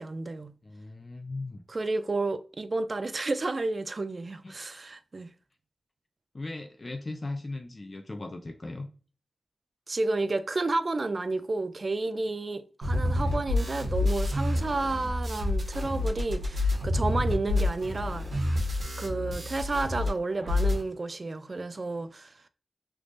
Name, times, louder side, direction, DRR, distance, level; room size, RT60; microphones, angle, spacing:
voice 1, 0.0-0.5 1.7-5.3 9.9-18.3 19.0-22.4, right 3 dB, 40° right, 0.3 m, -31 dB
voice 2, 0.6-1.6 4.4-4.6 6.3-8.9 13.2-13.4, left 2 dB, 35° left, 0.4 m, -38 dB
sound 1, 12.8-20.1 20.3-20.8, left 2 dB, 60° right, 1.3 m, -28 dB
3.3 x 3.1 x 2.5 m
wide cardioid pair, 100°, 0 cm